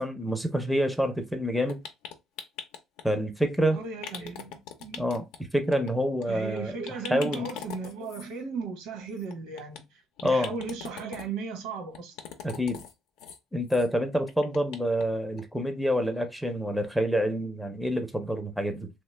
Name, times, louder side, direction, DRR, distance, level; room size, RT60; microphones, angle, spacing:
voice 1, 0.0-1.8 3.0-3.8 5.0-5.2 5.5-7.5 10.2-10.6 12.4-12.8 13.5-18.9, equal, ahead, 0.5 m, -27 dB
sound 1, 1.7-3.0 4.0-5.4 5.7-5.9 6.2-6.3 6.6-6.7 6.8-8.3 9.2-9.8 10.2-11.3 11.9-12.9 13.2-13.4 13.7-13.9 14.1-15.0 15.4-15.5 15.8-15.9, left 7 dB, 90° left, 0.6 m, -41 dB
voice 2, 3.7-5.0 6.3-12.1, right 4 dB, 90° right, 1.0 m, -36 dB
3.1 x 2.1 x 3.2 m
cardioid pair, 140°, 0 cm